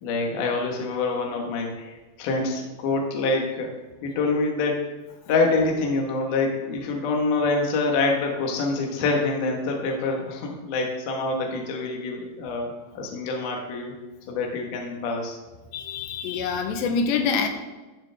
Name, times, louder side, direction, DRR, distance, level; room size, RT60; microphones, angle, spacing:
voice 1, 0.0-3.7 4.0-4.8 5.3-14.0 14.3-15.4, left 3 dB, 60° left, 1 dB, 2.5 m, -26 dB
voice 2, 15.7-17.5, left 5 dB, 85° left, 5 dB, 3.1 m, -25 dB
13.5 x 7.3 x 3.5 m, 1.2 s
omnidirectional pair, 5.0 m